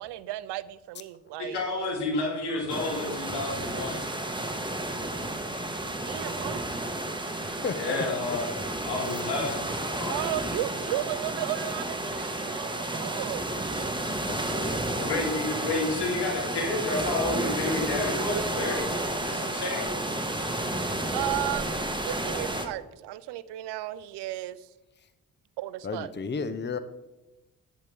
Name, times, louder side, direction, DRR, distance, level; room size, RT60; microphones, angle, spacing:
voice 1, 0.0-1.6 6.1-6.6 10.1-14.0 21.1-24.7 25.6-26.1, right 15 dB, 75° right, 17 dB, 0.6 m, -34 dB
voice 2, 1.4-4.0 7.7-8.5 8.8-10.1 15.0-18.9 19.2-19.9, left 3 dB, 75° left, -1 dB, 3.1 m, -30 dB
sound 1, 2.7-22.7, right 1 dB, 10° right, 1.6 m, -31 dB
voice 3, 14.3-15.1 20.5-20.6 25.8-26.8, left 5 dB, 25° left, 12 dB, 0.8 m, -34 dB
10.5 x 9.5 x 3.5 m, 1.0 s
hypercardioid pair, 40°, 41 cm